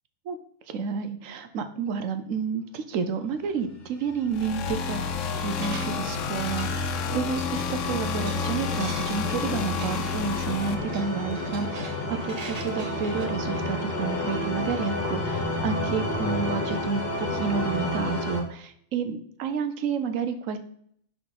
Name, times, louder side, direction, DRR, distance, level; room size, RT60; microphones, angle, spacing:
voice 1, 0.7-5.1 5.4-20.6, right 6 dB, 85° right, 9 dB, 1.1 m, -30 dB
sound 1, 4.1-18.4, left 1 dB, 50° left, 1.3 m, -31 dB
sound 2, 4.3-10.7, left 7 dB, 75° left, 1.0 m, -30 dB
sound 3, 4.8-13.3, right 4 dB, 40° right, 0.6 m, -45 dB
6.0 x 3.9 x 4.7 m, 0.66 s
omnidirectional pair, 1.3 m